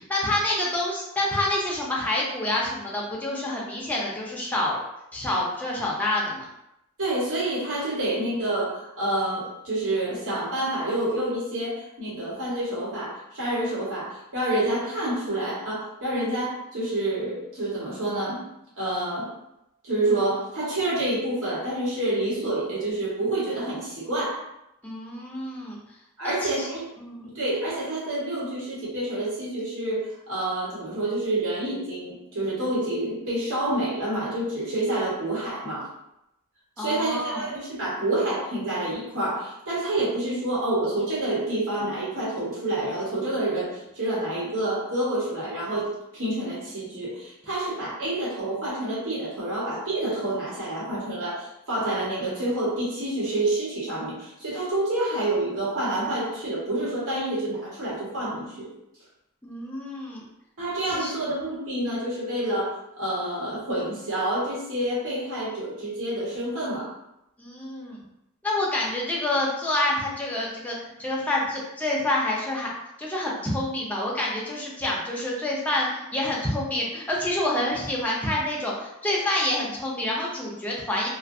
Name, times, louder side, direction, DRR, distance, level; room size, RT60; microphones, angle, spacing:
voice 1, 0.0-4.8 5.1-6.5 24.8-25.8 26.2-26.7 27.0-27.3 36.8-37.5 59.4-60.2 60.9-61.1 67.4-68.0 68.4-72.7 73.0-81.1, left 1 dB, 5° left, -4 dB, 0.5 m, -27 dB
voice 2, 7.0-18.4 18.8-19.3 19.8-24.4 26.2-26.9 27.3-35.9 36.8-43.7 43.9-58.7 60.6-66.9, right 1 dB, 65° right, -8 dB, 1.2 m, -28 dB
2.6 x 2.4 x 2.6 m, 0.86 s
head